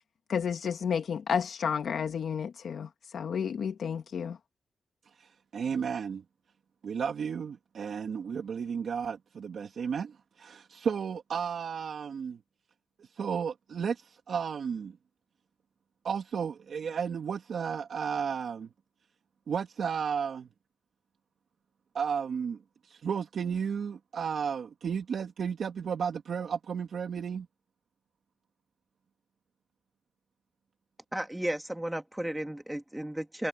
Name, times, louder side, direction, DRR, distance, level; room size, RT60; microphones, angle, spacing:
voice 1, 0.3-4.4, left 7 dB, 65° left, 1.4 m, -31 dB
voice 2, 5.1-6.2 6.8-12.4 13.0-15.0 16.0-18.7 19.5-20.5 21.9-27.5, right 7 dB, 65° right, 2.0 m, -33 dB
voice 3, 31.1-33.5, right 1 dB, 5° right, 2.0 m, -34 dB
cardioid pair, 110°, 0 cm